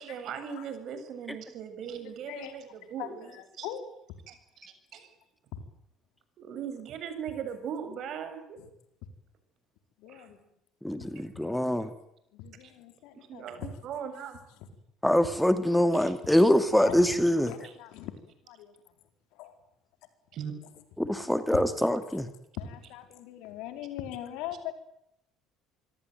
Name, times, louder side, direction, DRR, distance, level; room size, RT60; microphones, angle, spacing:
voice 1, 0.0-3.7 4.3-4.4 4.9-5.1 6.4-8.6 10.1-10.3 12.6-12.7 13.2-14.4 16.0-16.1 17.6-17.7 20.3-20.5, right 7 dB, 55° right, 9 dB, 7.6 m, -39 dB
voice 2, 2.0-2.5 3.0-3.9 5.5-5.6 10.0-10.4 11.3-11.5 12.3-13.7 16.8-17.0 17.4-18.7 19.3-19.5 21.2-21.6 22.6-24.7, left 11 dB, 70° left, 8 dB, 4.5 m, -41 dB
voice 3, 11.1-11.9 15.0-17.5 21.0-22.3, equal, 5° left, 10 dB, 2.6 m, -24 dB
27.0 x 22.0 x 9.4 m, 0.79 s
hypercardioid pair, 65°, 0 cm